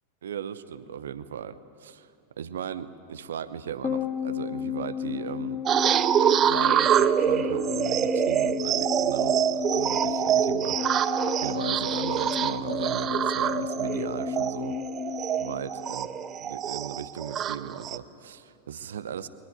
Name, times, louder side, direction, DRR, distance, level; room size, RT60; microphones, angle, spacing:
voice 1, 0.2-2.1 2.4-5.6 6.4-14.8 15.4-16.1 16.4-19.3, right 8 dB, 65° right, 15 dB, 0.9 m, -37 dB
sound 1, 3.8-16.4 16.6-16.7, left 9 dB, 20° left, 0.9 m, -33 dB
sound 2, 5.7-18.0, right 9 dB, 30° right, 0.6 m, -25 dB
22.5 x 19.0 x 9.3 m, 2.6 s
figure-of-eight pair, 90°, 0 cm